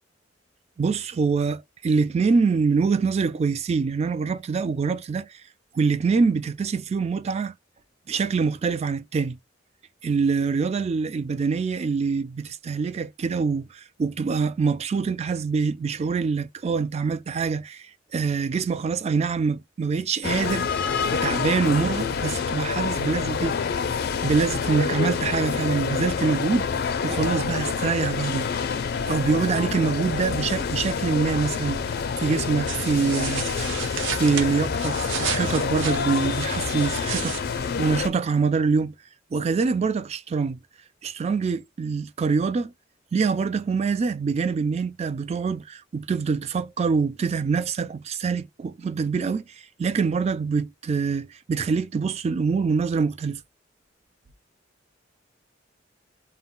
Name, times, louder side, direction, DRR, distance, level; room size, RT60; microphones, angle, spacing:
voice 1, 0.8-1.6 1.8-5.3 5.7-7.5 8.1-9.4 10.0-17.9 18.1-20.7 21.1-23.6 24.2-26.7 27.0-28.5 29.1-31.8 32.2-33.5 34.1-38.9 39.3-40.6 41.0-42.7 43.1-49.4 49.8-53.4, right 5 dB, 35° right, 0.3 m, -25 dB
sound 1, 20.2-38.1, left 6 dB, 55° left, 0.4 m, -27 dB
sound 2, 32.7-38.0, right 7 dB, 80° right, 0.6 m, -33 dB
2.2 x 2.1 x 3.6 m
head